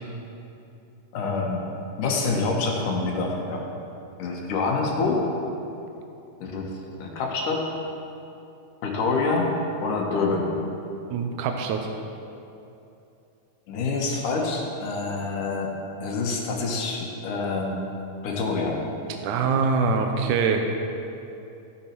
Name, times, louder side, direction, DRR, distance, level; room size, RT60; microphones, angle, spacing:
voice 1, 1.1-1.6 2.0-3.7 4.2-5.3 6.4-6.7 7.0-7.7 8.8-9.5 9.8-10.5 13.7-17.8 18.2-18.8, left 3 dB, 70° left, 0 dB, 2.8 m, -26 dB
voice 2, 11.1-11.8 19.2-20.7, right 5 dB, 75° right, 4 dB, 2.0 m, -23 dB
15.0 x 10.0 x 4.6 m, 2.8 s
omnidirectional pair, 4.0 m